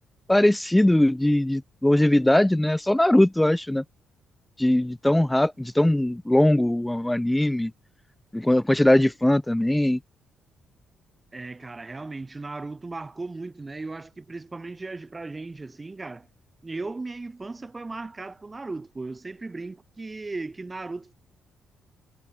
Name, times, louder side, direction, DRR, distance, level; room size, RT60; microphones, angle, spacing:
voice 1, 0.3-3.8 4.6-7.7 8.3-10.0, left 1 dB, 5° left, 0.5 m, -20 dB
voice 2, 11.3-16.3 16.6-21.1, right 3 dB, 20° right, 4.7 m, -36 dB
cardioid pair, 90°, 0 cm